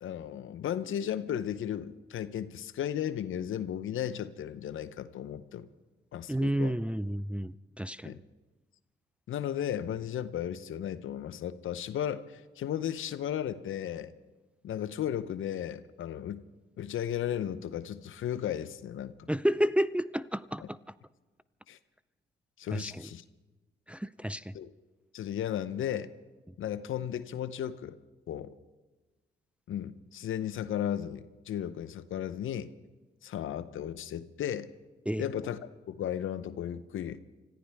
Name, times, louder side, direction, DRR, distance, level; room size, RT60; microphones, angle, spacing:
voice 1, 0.0-5.7 6.1-6.7 8.0-8.2 9.3-14.1 14.6-16.4 16.8-19.3 20.6-20.7 21.7-21.8 22.6-23.2 24.5-24.7 25.1-26.1 26.6-28.0 28.3-28.5 29.7-32.7 33.2-34.7 35.2-35.6 35.9-37.2, left 10 dB, 70° left, 14 dB, 0.8 m, -35 dB
voice 2, 6.3-8.2 19.3-20.8 22.7-23.0 23.9-24.5 35.1-35.3, equal, 5° right, 14 dB, 0.5 m, -30 dB
25.5 x 14.5 x 3.5 m, 1.2 s
supercardioid pair, 55°, 21 cm